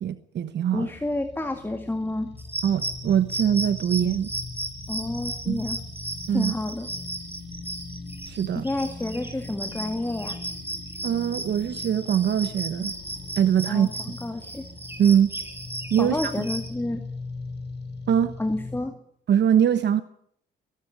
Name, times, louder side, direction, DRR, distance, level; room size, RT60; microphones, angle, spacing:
voice 1, 0.0-0.9 2.6-4.3 5.5-5.6 6.3-6.5 8.3-8.7 11.0-12.9 13.4-13.9 15.0-15.3 15.9-16.3 18.1-18.3 19.3-20.0, right 9 dB, 60° right, 12 dB, 1.1 m, -22 dB
voice 2, 0.7-2.3 4.9-5.8 6.3-6.9 8.6-10.4 13.7-14.7 16.0-17.0 18.4-18.9, left 2 dB, 10° left, 7 dB, 2.0 m, -29 dB
sound 1, 0.8-18.8, left 3 dB, 60° left, 6.9 m, -40 dB
sound 2, 2.4-16.7, right 1 dB, 10° right, 5.7 m, -35 dB
22.0 x 12.5 x 9.6 m, 0.67 s
cardioid pair, 90°, 20 cm